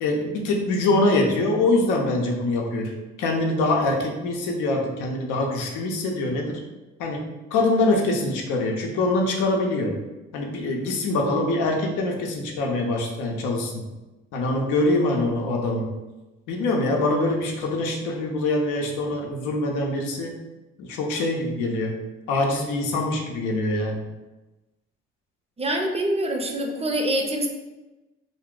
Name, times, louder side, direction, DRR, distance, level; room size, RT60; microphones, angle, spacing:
voice 1, 0.0-2.9 3.2-6.6 7.0-9.9 10.3-13.8 14.3-15.9 16.5-20.4 20.8-22.0 22.3-24.0, left 2 dB, 80° left, 1 dB, 0.6 m, -24 dB
voice 2, 25.6-27.5, right 1 dB, 20° right, 3 dB, 0.5 m, -25 dB
2.4 x 2.0 x 3.6 m, 1.1 s
hypercardioid pair, 55°, 30 cm